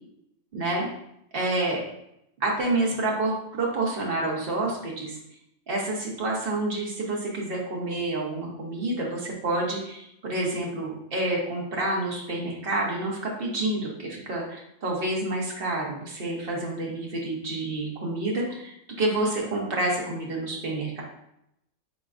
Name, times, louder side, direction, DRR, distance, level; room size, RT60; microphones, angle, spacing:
voice 1, 0.5-0.9 1.3-1.8 2.4-5.2 5.7-21.0, right 2 dB, 50° right, -2 dB, 1.1 m, -28 dB
5.1 x 3.6 x 2.4 m, 0.80 s
omnidirectional pair, 1.4 m